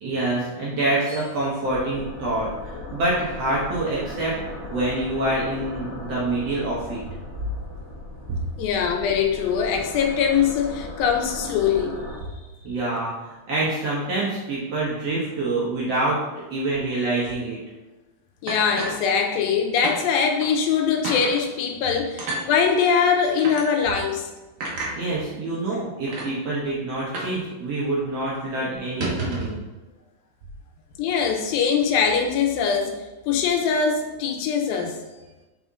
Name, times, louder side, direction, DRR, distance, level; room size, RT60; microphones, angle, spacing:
voice 1, 0.0-4.4 4.7-7.0 12.6-16.2 16.5-17.6 25.0-29.6, right 2 dB, 60° right, -6 dB, 1.8 m, -26 dB
sound 1, 1.6-12.2, left 2 dB, 15° left, 1.1 m, -37 dB
voice 2, 8.6-12.0 18.4-24.3 29.2-29.3 31.0-33.0 33.3-35.0, left 6 dB, 80° left, 3 dB, 2.5 m, -22 dB
sound 2, 18.5-19.5 19.8-20.0 20.4-20.5 21.0-21.3 22.2-22.4 23.4-23.6 24.6-24.9 25.7-25.8 26.1-26.3 27.1-27.4 27.6-27.7 28.1-28.3 28.8-29.6, right 3 dB, 85° right, 1.1 m, -30 dB
5.6 x 5.0 x 3.7 m, 1.1 s
omnidirectional pair, 4.1 m